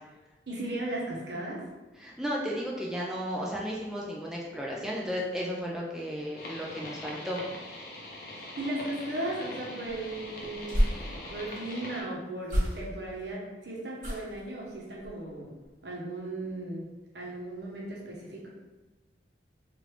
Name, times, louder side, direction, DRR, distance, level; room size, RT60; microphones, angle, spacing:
voice 1, 0.5-1.6 8.3-10.8 11.3-15.5 15.8-16.8 17.1-18.5, right 1 dB, 65° right, -3 dB, 0.9 m, -36 dB
voice 2, 2.0-7.4, equal, 5° right, -4 dB, 0.3 m, -34 dB
sound 1, 6.4-12.0, left 1 dB, 55° left, 0.6 m, -42 dB
sound 2, 9.9-11.5 12.4-13.2 14.0-14.5 15.0-15.3 15.6-15.7, equal, 45° right, 1.5 m, -31 dB
3.2 x 2.5 x 3.1 m, 1.1 s
head